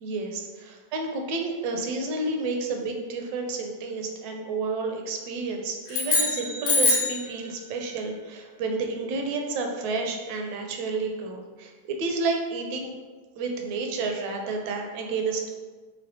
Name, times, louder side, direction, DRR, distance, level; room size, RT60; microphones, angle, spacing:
voice 1, 0.0-12.9 13.4-15.5, right 3 dB, 45° right, 2 dB, 0.4 m, -30 dB
sound 1, 5.9-7.2, left 3 dB, 50° left, 0.9 m, -23 dB
3.1 x 2.5 x 2.6 m, 1.4 s
figure-of-eight pair, 90°, 0 cm